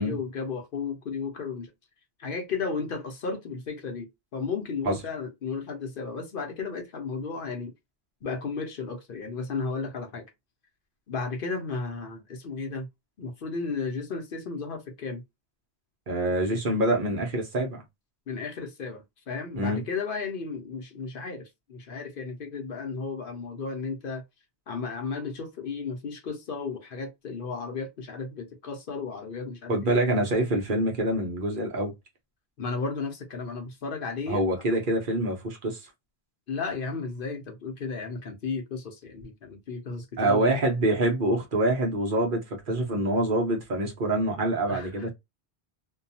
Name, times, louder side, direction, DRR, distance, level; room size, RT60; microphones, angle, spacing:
voice 1, 0.0-1.7 2.2-7.7 8.2-10.3 11.1-12.9 13.2-15.2 18.3-24.2 24.7-30.0 32.6-34.4 36.5-40.5 44.7-45.1, left 4 dB, 60° left, 0.8 m, -34 dB
voice 2, 16.1-17.8 19.6-19.8 29.7-31.9 34.3-35.8 40.2-45.1, right 1 dB, 55° right, 1.0 m, -25 dB
2.6 x 2.3 x 2.7 m
omnidirectional pair, 1.1 m